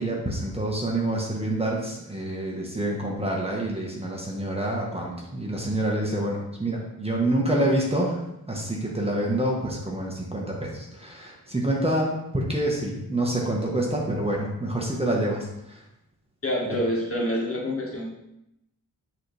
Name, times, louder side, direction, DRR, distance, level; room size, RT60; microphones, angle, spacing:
voice 1, 0.0-8.2 8.5-15.8 16.7-16.8, right 1 dB, 15° right, -2 dB, 1.4 m, -27 dB
voice 2, 16.4-18.1, equal, 40° left, -3 dB, 1.8 m, -27 dB
8.9 x 4.1 x 3.4 m, 0.83 s
wide cardioid pair, 85°, 35 cm